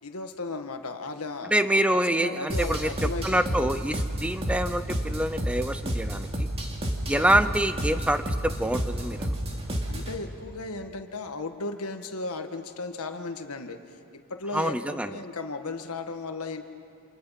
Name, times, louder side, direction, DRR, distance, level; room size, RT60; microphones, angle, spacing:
voice 1, 0.0-3.8 7.1-7.4 9.9-13.8 14.3-16.6, left 3 dB, 70° left, 6 dB, 1.6 m, -36 dB
voice 2, 1.5-6.5 7.1-9.4 14.5-15.2, right 1 dB, 5° right, 11 dB, 0.5 m, -26 dB
sound 1, 2.5-10.2, right 1 dB, 30° right, 2.6 m, -30 dB
29.0 x 28.0 x 5.9 m, 2.5 s
head